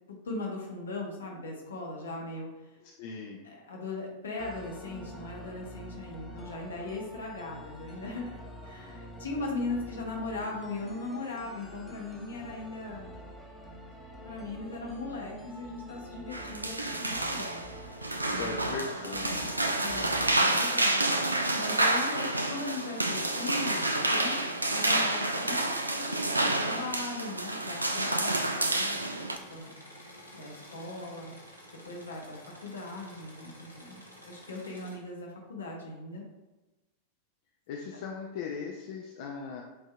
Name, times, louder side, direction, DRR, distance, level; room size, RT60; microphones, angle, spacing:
voice 1, 0.1-2.8 3.4-8.3 8.6-13.1 14.2-17.7 18.3-18.9 19.8-21.1 21.5-24.4 24.7-29.7 30.3-31.3 31.8-36.2, left 3 dB, 70° left, -1 dB, 1.0 m, -39 dB
voice 2, 3.0-3.4 18.2-19.5 37.7-39.6, left 5 dB, 50° left, 0 dB, 0.4 m, -38 dB
sound 1, 4.4-20.4, equal, 5° left, 0.8 m, -47 dB
sound 2, 16.3-29.4, right 2 dB, 80° right, 0.3 m, -29 dB
Engine / Mechanisms, 19.2-20.5 20.8-35.0, equal, 90° left, 0.8 m, -51 dB
7.7 x 2.7 x 2.3 m, 1.1 s
figure-of-eight pair, 90°, 0 cm